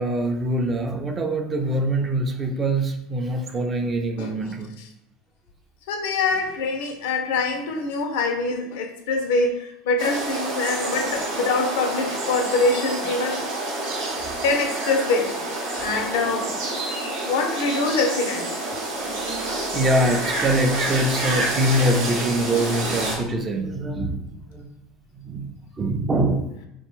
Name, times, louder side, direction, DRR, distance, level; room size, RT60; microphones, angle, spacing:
voice 1, 0.0-4.7 11.0-11.1 13.8-14.3 15.7-15.9 19.0-24.7 25.1-26.5, right 1 dB, 30° right, 5 dB, 0.4 m, -24 dB
voice 2, 5.9-13.4 14.4-15.3 15.8-16.6 17.2-18.5 22.5-22.7, left 3 dB, 75° left, 4 dB, 0.4 m, -24 dB
sound 1, 10.0-23.2, right 2 dB, 75° right, 0.7 m, -28 dB
2.5 x 2.1 x 3.1 m, 0.81 s
hypercardioid pair, 85°, 0 cm